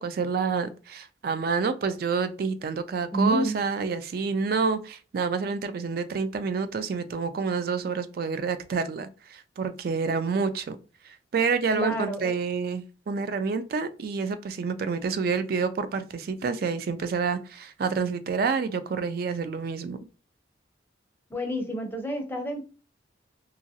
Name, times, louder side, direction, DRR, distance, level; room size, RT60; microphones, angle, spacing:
voice 1, 0.0-10.8 11.3-20.0, right 5 dB, 55° right, 0.3 m, -28 dB
voice 2, 3.1-3.6 11.7-12.3 21.3-22.6, right 1 dB, 10° left, 0.5 m, -29 dB
2.9 x 2.5 x 2.7 m
head